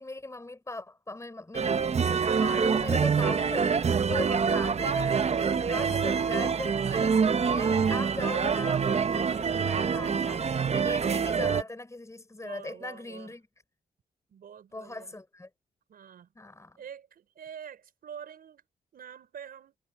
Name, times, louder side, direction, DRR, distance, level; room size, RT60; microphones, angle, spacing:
voice 1, 0.0-7.1 7.4-13.4 14.7-15.5 16.3-16.8, left 2 dB, 20° left, 4.8 m, -39 dB
sound 1, 1.5-11.6, right 6 dB, 45° right, 0.8 m, -26 dB
voice 2, 4.2-4.8 5.7-6.1 9.4-10.1 12.4-13.3 14.3-15.2 15.9-16.3 16.8-18.6 18.9-19.8, right 8 dB, 80° right, 4.7 m, -47 dB
cardioid pair, 75°, 15 cm